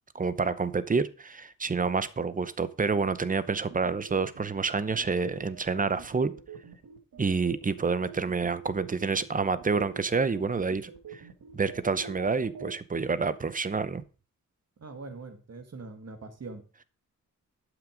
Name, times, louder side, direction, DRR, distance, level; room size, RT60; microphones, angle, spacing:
voice 1, 0.1-6.3 7.2-11.2 11.5-14.0, right 4 dB, 25° right, 0.7 m, -28 dB
sound 1, 3.7-12.7, right 5 dB, 90° right, 1.9 m, -45 dB
voice 2, 14.8-16.6, right 3 dB, 50° right, 1.8 m, -42 dB
11.5 x 6.1 x 5.1 m
wide cardioid pair, 140°, 32 cm